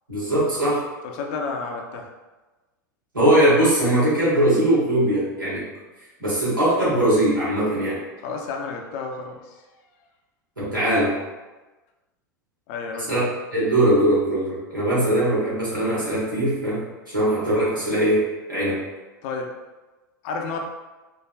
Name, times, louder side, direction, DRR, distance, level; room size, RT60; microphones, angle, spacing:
voice 1, 0.1-0.8 3.1-5.7 6.2-8.0 10.6-11.2 13.1-13.2 13.5-16.8 17.1-18.2 18.5-18.8, right 1 dB, 80° right, -8 dB, 1.5 m, -20 dB
voice 2, 1.0-2.1 8.2-9.6 12.7-13.1 19.2-19.5 20.2-20.6, left 4 dB, 45° left, 2 dB, 0.5 m, -31 dB
4.6 x 2.4 x 2.2 m, 1.2 s
figure-of-eight pair, 85°, 11 cm